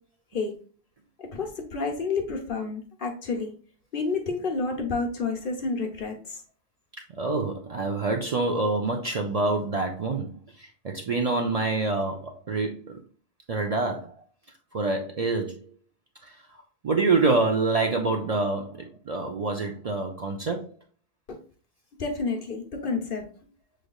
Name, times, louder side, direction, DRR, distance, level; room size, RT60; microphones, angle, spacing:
voice 1, 1.2-3.5 3.9-6.4 22.0-23.2, left 4 dB, 60° left, 1.1 m, -29 dB
voice 2, 7.1-13.0 13.5-14.1 14.7-15.6 16.2-16.4 16.8-20.7, right 3 dB, 50° right, 0.5 m, -26 dB
6.2 x 3.3 x 2.3 m
omnidirectional pair, 1.1 m